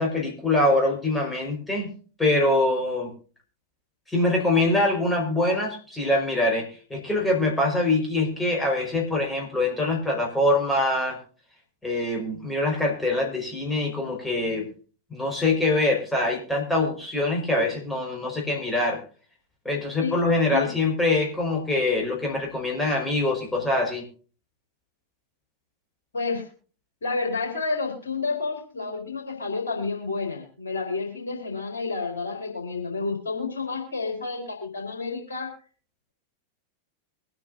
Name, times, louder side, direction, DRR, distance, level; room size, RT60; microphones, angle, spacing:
voice 1, 0.0-1.9 2.2-3.1 4.1-11.2 11.8-14.7 15.1-19.0 19.6-24.0, left 2 dB, 10° left, -1 dB, 4.8 m, -24 dB
voice 2, 27.0-35.5, left 4 dB, 70° left, 1 dB, 4.0 m, -30 dB
24.0 x 9.6 x 2.6 m, 0.39 s
figure-of-eight pair, 90°, 0 cm